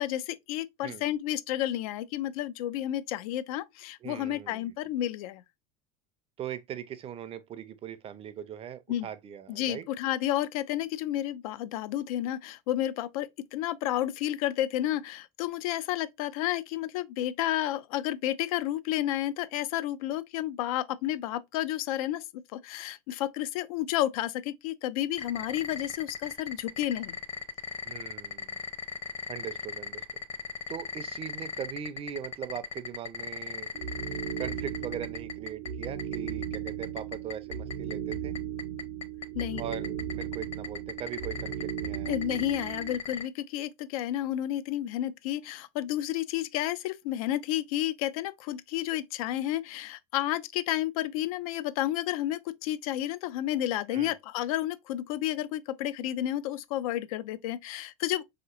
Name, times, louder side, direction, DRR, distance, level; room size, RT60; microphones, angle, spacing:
voice 1, 0.0-5.4 8.9-9.1 9.5-27.2 39.3-39.6 42.1-58.2, left 13 dB, 70° left, 0.4 m, -31 dB
voice 2, 4.0-4.7 6.4-9.9 27.8-28.6 29.3-30.1 30.7-33.7 34.4-38.4 39.6-42.6 53.9-54.1, right 9 dB, 30° right, 0.5 m, -40 dB
sound 1, 25.2-43.3, left 5 dB, 30° left, 0.7 m, -36 dB
sound 2, 33.7-43.0, right 9 dB, 85° right, 0.5 m, -36 dB
3.9 x 2.8 x 2.3 m
hypercardioid pair, 100°, 19 cm